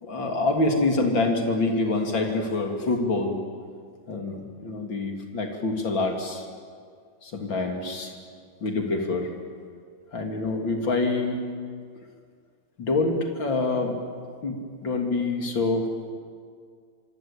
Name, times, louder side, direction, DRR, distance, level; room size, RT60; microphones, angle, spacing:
voice 1, 0.0-3.4 4.1-6.5 7.2-8.2 8.6-9.3 10.1-11.5 12.8-14.0 14.4-16.1, left 2 dB, 80° left, 3 dB, 3.7 m, -26 dB
26.0 x 25.0 x 8.9 m, 2.1 s
omnidirectional pair, 2.1 m